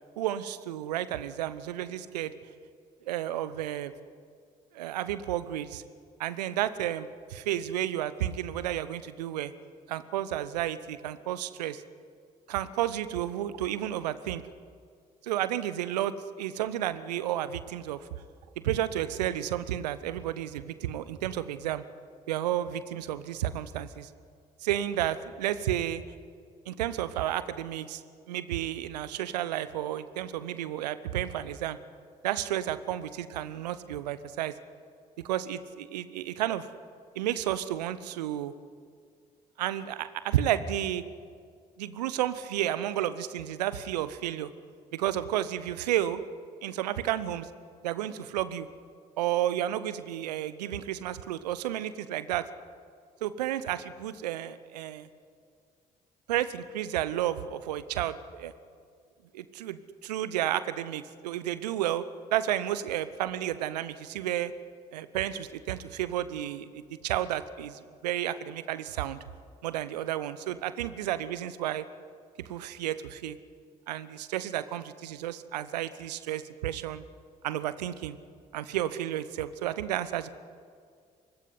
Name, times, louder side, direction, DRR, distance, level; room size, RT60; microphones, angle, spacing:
voice 1, 0.2-2.3 3.1-3.9 4.7-5.8 6.2-9.5 9.9-11.8 12.5-14.4 15.2-18.0 18.6-21.8 22.3-24.1 24.6-26.0 26.7-28.0 28.3-31.8 32.2-34.5 35.2-36.7 37.1-38.5 39.6-41.0 41.8-44.5 44.9-46.2 46.6-47.5 47.8-48.7 49.2-52.5 53.2-55.1 56.3-58.5 59.3-62.0 62.3-64.5 64.9-69.2 69.6-71.8 72.5-73.4 73.9-77.0 77.4-78.2 78.5-80.4, right 12 dB, 75° right, 15 dB, 0.9 m, -32 dB
24.5 x 19.5 x 9.6 m, 2.1 s
figure-of-eight pair, 45°, 21 cm